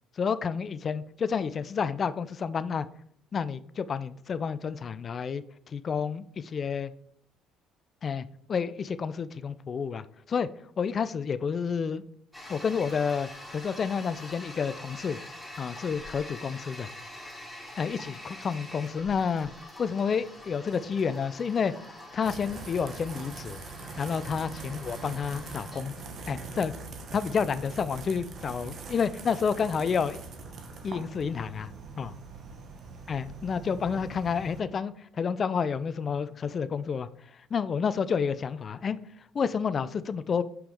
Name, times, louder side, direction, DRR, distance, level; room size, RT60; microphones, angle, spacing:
voice 1, 0.2-2.9 3.3-6.9 8.0-10.5 10.8-12.0 12.5-15.2 15.6-16.9 17.8-19.5 19.8-21.7 22.1-23.6 24.0-25.9 26.3-26.7 27.1-30.2 30.8-31.7 32.0-32.1 33.1-37.1 37.5-39.0 39.3-40.4, left 6 dB, 40° left, 15 dB, 0.4 m, -30 dB
Toilet flush, 12.3-29.0, left 1 dB, 5° left, 2.8 m, -45 dB
sound 1, 22.2-34.6, right 4 dB, 50° right, 1.1 m, -43 dB
6.3 x 5.8 x 3.6 m, 0.66 s
figure-of-eight pair, 55°, 0 cm